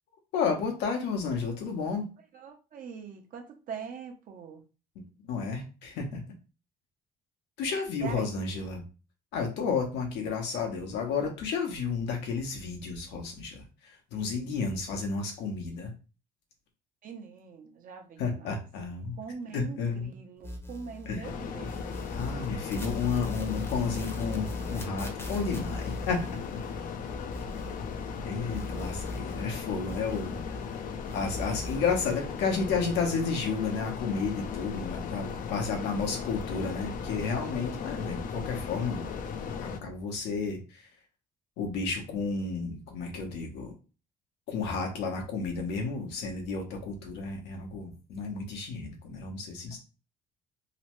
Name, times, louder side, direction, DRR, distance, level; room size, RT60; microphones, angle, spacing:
voice 1, 0.3-2.1 5.2-6.2 7.6-8.8 9.3-15.9 18.2-19.2 19.5-20.1 21.1-21.3 22.1-26.9 28.2-39.0 39.6-40.9 41.6-43.7 44.5-49.8, left 5 dB, 85° left, 2 dB, 0.9 m, -32 dB
voice 2, 2.3-4.6 8.0-8.3 17.0-18.6 19.2-22.0 32.0-32.1 49.7-49.8, right 6 dB, 55° right, 3 dB, 0.8 m, -42 dB
sound 1, 20.4-21.3 21.6-28.2 28.5-30.8 31.0-32.0, left 1 dB, 15° left, 0.7 m, -40 dB
sound 2, 21.2-39.8, left 6 dB, 55° left, 0.5 m, -37 dB
2.9 x 2.1 x 3.0 m, 0.33 s
cardioid pair, 110°, 17 cm